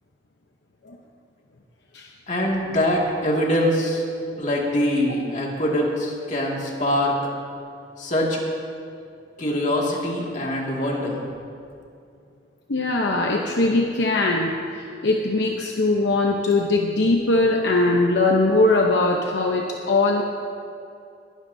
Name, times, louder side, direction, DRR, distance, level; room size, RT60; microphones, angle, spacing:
voice 1, 2.3-4.0 4.4-7.1 8.0-8.4 9.4-11.2, left 1 dB, 45° left, -2 dB, 2.2 m, -23 dB
voice 2, 12.7-20.2, left 2 dB, 70° left, 0 dB, 0.8 m, -21 dB
21.0 x 11.5 x 2.7 m, 2.5 s
head